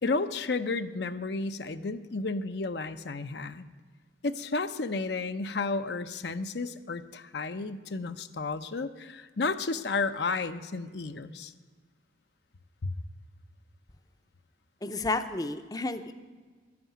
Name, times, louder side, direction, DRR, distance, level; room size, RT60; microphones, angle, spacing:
voice 1, 0.0-3.7 4.2-11.5 12.8-12.9, left 3 dB, 65° left, 9 dB, 0.7 m, -32 dB
voice 2, 14.8-16.1, left 2 dB, 20° left, 9 dB, 0.6 m, -31 dB
11.5 x 9.6 x 9.3 m, 1.5 s
head